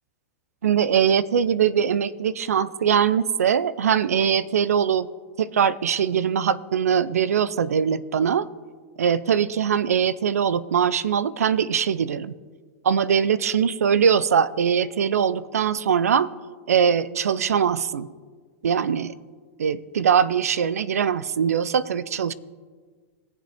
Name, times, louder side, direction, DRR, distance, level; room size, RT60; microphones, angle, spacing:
voice 1, 0.6-5.1 5.4-8.5 9.0-12.4 12.8-16.3 16.7-18.1 18.6-19.1 19.6-22.3, right 7 dB, 90° right, 19 dB, 0.5 m, -22 dB
20.0 x 7.6 x 3.5 m, 1.6 s
hypercardioid pair, 120°, 8 cm